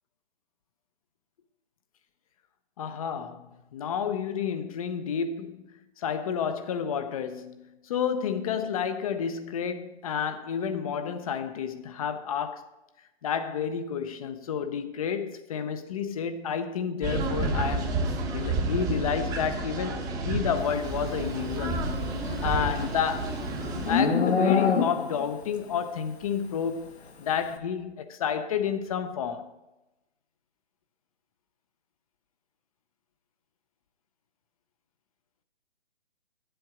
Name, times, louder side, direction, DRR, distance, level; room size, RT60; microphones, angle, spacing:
voice 1, 2.8-5.7 6.0-12.7 13.2-17.9 18.3-22.1 22.4-23.4 23.9-29.5, left 7 dB, 35° left, 0.6 m, -30 dB
sound 1, 17.0-24.0, right 2 dB, 10° right, 0.8 m, -30 dB
Livestock farm animals working animals, 22.1-25.3, left 5 dB, 80° left, 1.3 m, -26 dB
9.1 x 7.9 x 4.9 m
hypercardioid pair, 150°, 32 cm